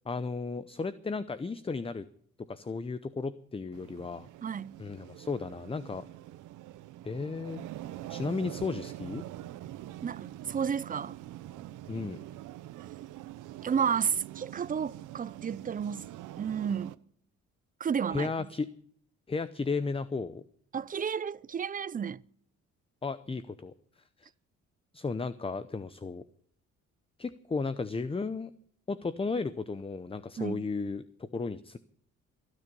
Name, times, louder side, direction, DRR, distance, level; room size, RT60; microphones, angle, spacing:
voice 1, 0.1-2.1 2.5-4.3 4.8-6.0 7.0-7.6 8.1-9.2 11.9-12.2 18.1-18.7 19.3-20.4 23.0-23.7 24.2-24.3 24.9-26.2 27.2-28.5 28.9-31.0 31.3-31.8, left 4 dB, 20° left, 0.7 m, -34 dB
sound 1, 3.7-17.0, right 14 dB, 90° right, 0.8 m, -44 dB
voice 2, 4.4-4.8 10.0-11.2 13.6-16.1 16.4-17.0 17.8-18.3 20.7-22.2 30.4-30.6, right 7 dB, 30° right, 0.5 m, -32 dB
25.0 x 9.9 x 5.3 m
cardioid pair, 90°, 30 cm